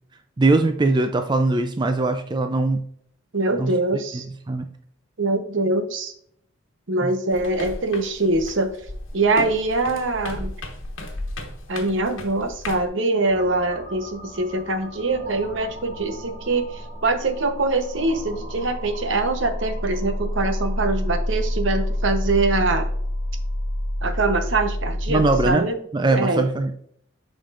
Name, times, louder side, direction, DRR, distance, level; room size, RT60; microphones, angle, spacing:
voice 1, 0.4-2.8 3.6-3.7 4.2-4.7 7.0-7.1 25.1-25.7 25.9-26.7, right 2 dB, 20° right, 7 dB, 0.4 m, -21 dB
voice 2, 3.3-4.3 5.2-6.1 6.9-8.7 9.1-10.5 11.7-22.9 24.0-25.7 26.1-26.5, right 2 dB, 70° right, 7 dB, 0.9 m, -23 dB
sound 1, 7.3-12.9, left 1 dB, 75° left, 1.4 m, -35 dB
sound 2, 13.2-25.5, equal, 50° right, 2.1 m, -29 dB
7.3 x 5.1 x 2.5 m, 0.65 s
head